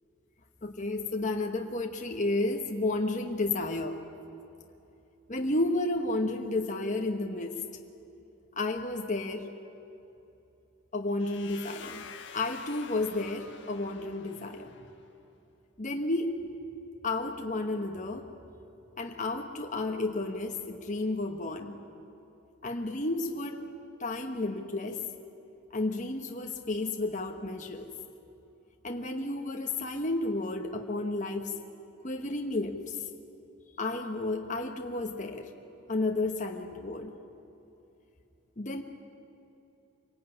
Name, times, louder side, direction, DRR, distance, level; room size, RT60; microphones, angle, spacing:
voice 1, 0.6-4.0 5.3-7.6 8.6-9.5 10.9-12.1 12.3-14.7 15.8-16.4 17.0-18.3 19.0-21.8 22.6-23.6 24.0-25.0 25.7-27.9 28.8-31.5 32.0-33.0 33.8-35.5 35.9-37.2 38.6-38.8, left 2 dB, 35° left, 3 dB, 1.2 m, -32 dB
sound 1, 11.2-15.0, left 6 dB, 55° left, 1.5 m, -48 dB
25.0 x 17.0 x 9.9 m, 2.9 s
head